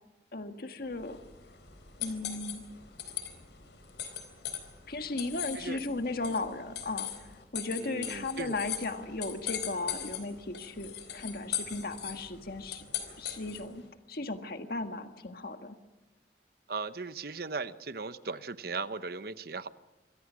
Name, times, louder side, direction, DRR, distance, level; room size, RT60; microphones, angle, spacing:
voice 1, 0.3-1.2 2.0-2.6 4.9-12.8 13.2-15.7, left 2 dB, 60° left, 7 dB, 1.6 m, -36 dB
sound 1, 0.9-13.8, left 10 dB, 85° left, 3.9 m, -40 dB
voice 2, 7.8-8.5 16.7-19.7, right 4 dB, 60° right, 13 dB, 1.0 m, -37 dB
27.5 x 23.0 x 6.3 m, 1.1 s
head